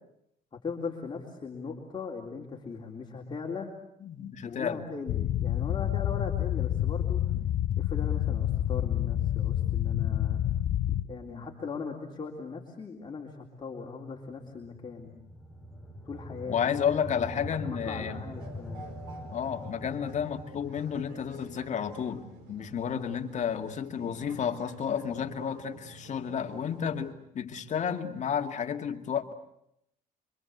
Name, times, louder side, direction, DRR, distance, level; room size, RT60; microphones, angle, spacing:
voice 1, 0.5-3.7 4.4-7.2 7.8-10.4 10.9-15.1 16.1-16.6 17.1-18.9, left 5 dB, 25° left, -1 dB, 3.7 m, -39 dB
voice 2, 4.0-4.8 7.3-7.5 11.3-11.5 16.5-18.2 19.2-29.3, left 7 dB, 45° left, 5 dB, 2.3 m, -32 dB
sound 1, 5.1-11.0, left 11 dB, 65° left, 1.1 m, -28 dB
sound 2, 14.2-24.4, left 1 dB, ahead, 3.4 m, -45 dB
sound 3, 18.1-27.1, right 3 dB, 85° right, 4.9 m, -50 dB
27.0 x 25.0 x 8.1 m, 0.78 s
cardioid pair, 110°, 17 cm